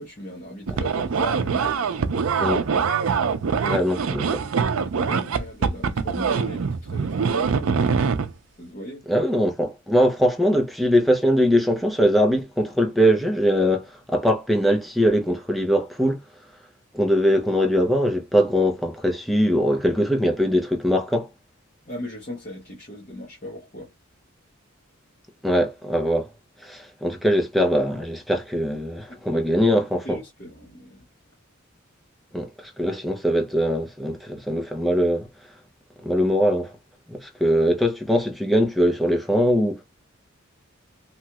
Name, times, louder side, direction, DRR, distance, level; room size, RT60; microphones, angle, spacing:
voice 1, 0.0-2.6 4.8-7.8 8.6-9.0 21.9-23.9 29.1-29.8 30.0-31.0, left 1 dB, 35° left, 1.0 m, -39 dB
sound 1, 0.7-8.3, right 5 dB, 80° right, 0.5 m, -24 dB
voice 2, 3.7-4.4 9.1-16.2 16.9-21.3 25.4-26.3 26.6-30.2 32.3-32.5 32.8-35.3 36.0-36.7 37.1-39.8, equal, ahead, 0.6 m, -21 dB
3.0 x 2.3 x 2.8 m
head